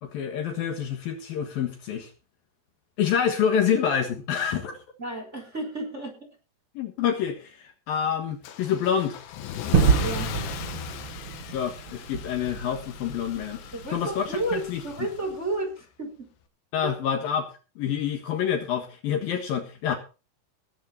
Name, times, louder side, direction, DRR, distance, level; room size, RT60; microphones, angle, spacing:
voice 1, 0.0-2.1 3.0-4.8 6.8-9.2 11.5-15.1 16.7-17.4 17.8-20.0, left 8 dB, 65° left, 4 dB, 3.1 m, -27 dB
voice 2, 5.0-6.3 10.0-10.4 13.7-16.3 16.8-16.9, right 2 dB, 15° right, 2 dB, 4.4 m, -32 dB
Car / Engine starting / Accelerating revving vroom, 8.4-15.6, left 10 dB, 85° left, 3.4 m, -38 dB
Gunshot gunfire / Fireworks / Boom, 9.7-14.5, right 6 dB, 55° right, 1.5 m, -27 dB
19.5 x 8.8 x 4.2 m, 0.33 s
omnidirectional pair, 4.8 m